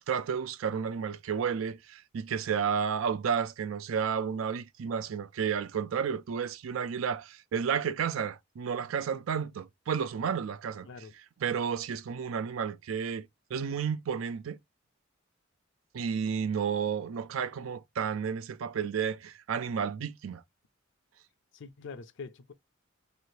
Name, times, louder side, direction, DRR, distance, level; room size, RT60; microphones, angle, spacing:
voice 1, 0.0-10.9 11.4-14.6 15.9-20.4, right 7 dB, 75° right, 0.4 m, -32 dB
voice 2, 10.8-11.1 21.5-22.5, left 4 dB, 65° left, 0.5 m, -44 dB
3.1 x 2.5 x 2.8 m
head